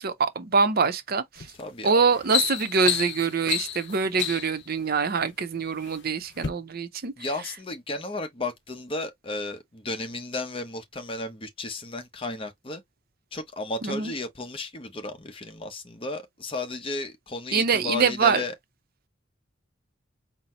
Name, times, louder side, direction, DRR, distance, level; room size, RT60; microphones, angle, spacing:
voice 1, 0.0-1.5 1.8-7.1 13.8-14.1 17.5-18.4, right 5 dB, 50° right, 0.6 m, -24 dB
sound 1, 1.4-1.6 2.0-4.6 5.4-6.0 6.3-6.5, left 9 dB, 60° left, 0.7 m, -29 dB
voice 2, 1.6-2.0 7.2-12.8 13.3-18.5, left 2 dB, 25° left, 0.8 m, -34 dB
4.1 x 2.0 x 4.2 m
head